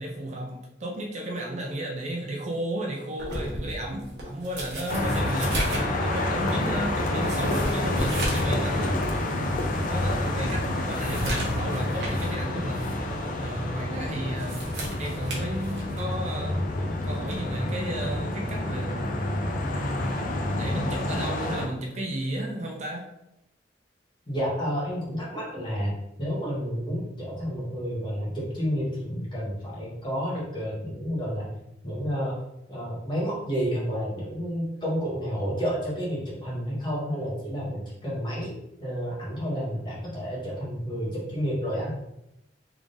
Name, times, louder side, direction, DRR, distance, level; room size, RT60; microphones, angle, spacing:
voice 1, 0.0-9.0 9.9-13.0 13.4-14.6 15.0-16.7 17.0-19.2 20.6-23.1, right 1 dB, 40° right, 0 dB, 0.5 m, -33 dB
sound 1, 3.2-8.6 8.9-9.0 9.6-9.7 10.1-12.4 12.7-13.0 14.2-16.1 17.2-17.5, right 1 dB, 65° right, 1.0 m, -35 dB
sound 2, 4.9-21.7, left 1 dB, 45° left, 0.4 m, -28 dB
voice 2, 24.3-31.5 31.8-32.4 32.7-38.5 38.8-42.0, equal, 25° left, -6 dB, 1.2 m, -30 dB
3.6 x 3.4 x 2.6 m, 0.85 s
head